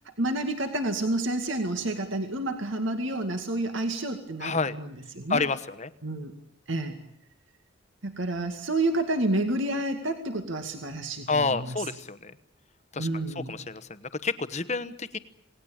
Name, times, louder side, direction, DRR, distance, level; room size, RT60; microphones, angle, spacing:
voice 1, 0.2-5.4 6.0-6.3 6.7-7.0 8.0-11.9 13.0-13.6, right 2 dB, 70° right, 6 dB, 2.3 m, -29 dB
voice 2, 4.4-4.8 5.3-5.9 11.3-12.3 12.9-13.1 13.5-15.2, left 4 dB, 35° left, 13 dB, 1.1 m, -29 dB
27.5 x 19.0 x 8.8 m, 0.71 s
head